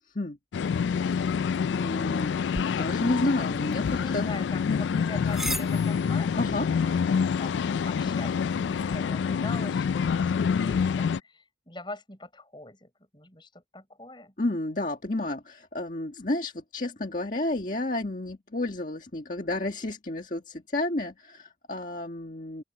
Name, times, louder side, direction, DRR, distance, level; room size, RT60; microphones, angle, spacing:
sound 1, 0.5-11.2, left 6 dB, 80° left, 0.3 m, -27 dB
voice 1, 1.7-4.3 6.4-6.7 14.4-22.6, left 2 dB, 45° left, 1.7 m, -31 dB
sound 2, 2.5-9.0, equal, ahead, 5.8 m, -41 dB
voice 2, 3.9-8.3 8.6-14.3, left 2 dB, 25° left, 6.0 m, -43 dB
open air
head